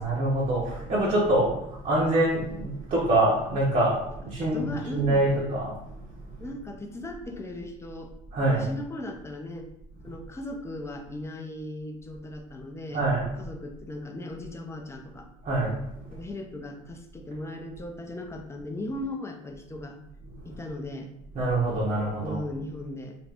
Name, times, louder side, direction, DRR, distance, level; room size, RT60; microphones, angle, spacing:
voice 1, 0.0-6.5 8.3-8.7 10.1-10.2 12.9-13.4 15.4-16.2 20.2-20.6 21.3-22.4, right 1 dB, 45° right, -6 dB, 0.8 m, -26 dB
voice 2, 0.9-1.5 4.4-5.4 6.4-8.1 8.5-9.7 10.0-13.1 13.4-15.3 16.1-20.0 20.4-21.1 22.2-23.2, left 1 dB, 15° left, 4 dB, 0.5 m, -37 dB
2.6 x 2.4 x 3.3 m, 0.81 s
supercardioid pair, 85°, 18 cm